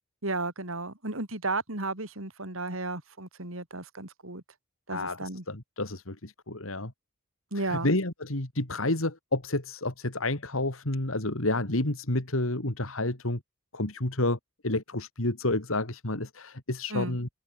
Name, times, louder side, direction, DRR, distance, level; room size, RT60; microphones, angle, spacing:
voice 1, 0.2-4.4 4.9-5.4 7.5-7.9 16.9-17.2, right 2 dB, 75° right, 4.7 m, -33 dB
voice 2, 4.9-6.9 7.5-13.4 13.7-17.3, left 2 dB, 75° left, 3.1 m, -30 dB
head